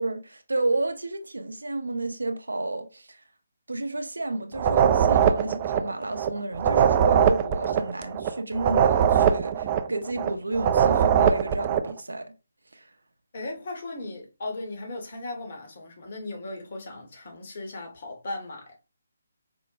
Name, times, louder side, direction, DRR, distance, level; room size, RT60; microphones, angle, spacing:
voice 1, 0.0-3.2 3.7-12.3 12.7-12.8, right 2 dB, 75° right, 0.6 m, -31 dB
sound 1, 4.5-11.9, right 8 dB, 30° right, 0.3 m, -21 dB
voice 2, 13.3-18.7, left 2 dB, 50° left, 1.1 m, -37 dB
4.5 x 2.1 x 2.4 m
figure-of-eight pair, 145°, 0 cm